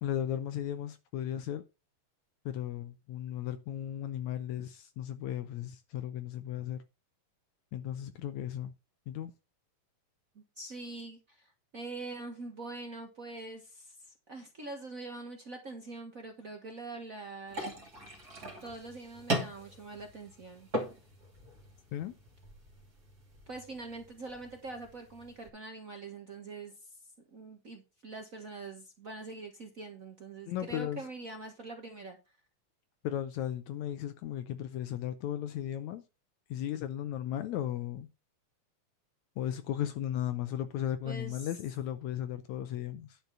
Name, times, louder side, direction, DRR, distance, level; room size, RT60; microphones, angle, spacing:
voice 1, 0.0-1.6 2.5-6.8 7.7-8.7 9.1-9.3 21.9-22.1 30.5-31.0 33.0-36.0 36.5-38.1 39.4-43.2, left 11 dB, 75° left, 1.8 m, -36 dB
voice 2, 10.3-17.8 18.6-20.7 23.5-26.7 27.3-32.2 41.0-41.5, right 3 dB, 65° right, 0.8 m, -44 dB
sound 1, 17.5-25.5, right 1 dB, 30° right, 2.9 m, -40 dB
10.5 x 5.3 x 5.5 m
omnidirectional pair, 3.8 m